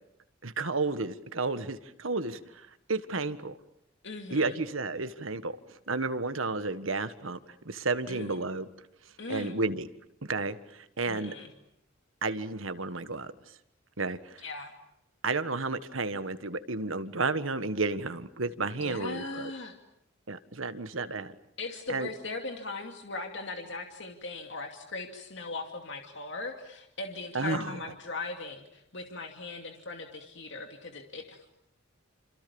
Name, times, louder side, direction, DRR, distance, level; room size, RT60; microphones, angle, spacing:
voice 1, 0.4-3.6 4.3-5.6 5.9-7.4 7.6-8.7 9.3-9.9 10.2-11.3 12.2-13.3 14.0-14.4 15.2-19.5 20.3-21.3 21.9-22.1 27.3-27.8, right 3 dB, 80° right, 11 dB, 1.6 m, -32 dB
voice 2, 4.0-4.6 8.1-8.4 9.2-9.6 11.1-11.5 14.4-14.7 18.8-19.7 21.6-31.5, left 3 dB, 65° left, 4 dB, 2.5 m, -39 dB
28.0 x 27.5 x 7.1 m, 0.78 s
head